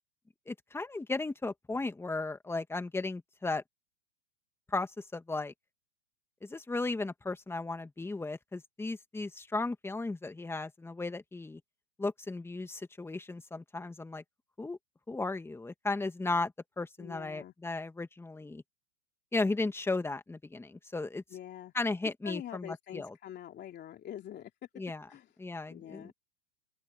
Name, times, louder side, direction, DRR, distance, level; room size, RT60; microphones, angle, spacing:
voice 1, 0.5-3.6 4.7-5.5 6.4-11.6 12.0-14.2 14.6-14.8 15.1-18.6 19.3-21.2 21.7-23.1 24.8-25.0 25.4-26.1, left 3 dB, 5° left, 2.1 m, -35 dB
voice 2, 17.0-17.5 21.3-21.7 22.2-24.7 25.1-25.3 25.7-26.1, left 11 dB, 25° left, 2.9 m, -45 dB
open air
hypercardioid pair, 120°, 40 cm